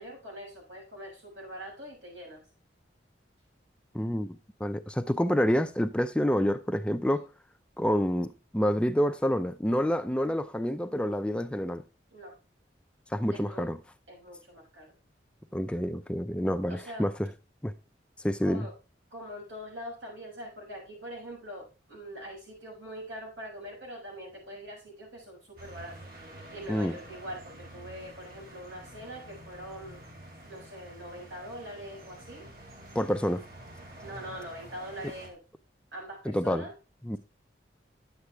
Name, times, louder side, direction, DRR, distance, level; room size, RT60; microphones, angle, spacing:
voice 1, 0.0-2.4 6.5-6.6 9.9-10.0 12.1-12.4 13.3-13.7 14.1-14.9 16.7-17.1 18.4-18.7 19.1-26.0 26.5-30.0 30.5-32.5 34.0-35.4 35.9-36.7, equal, 85° right, 6.6 m, -43 dB
voice 2, 3.9-4.3 4.6-7.2 7.8-11.8 13.1-13.8 15.5-17.3 17.6-17.7 18.2-18.7 26.7-27.0 32.9-33.4 36.2-36.6 37.0-37.2, equal, 5° left, 0.4 m, -28 dB
sound 1, 25.6-35.3, right 1 dB, 50° right, 2.8 m, -48 dB
10.5 x 8.1 x 3.4 m
head